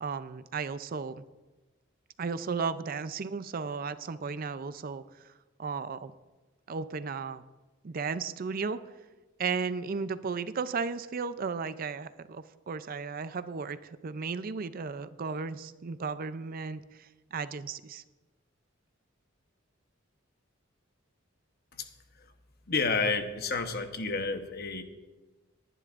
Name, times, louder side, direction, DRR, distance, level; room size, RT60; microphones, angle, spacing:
voice 1, 0.0-1.2 2.2-5.3 5.6-6.1 6.7-7.4 7.8-8.9 9.4-18.0, right 5 dB, 45° right, 13 dB, 0.4 m, -35 dB
voice 2, 22.7-24.8, left 4 dB, 50° left, 7 dB, 1.0 m, -30 dB
19.5 x 11.0 x 2.5 m, 1.2 s
head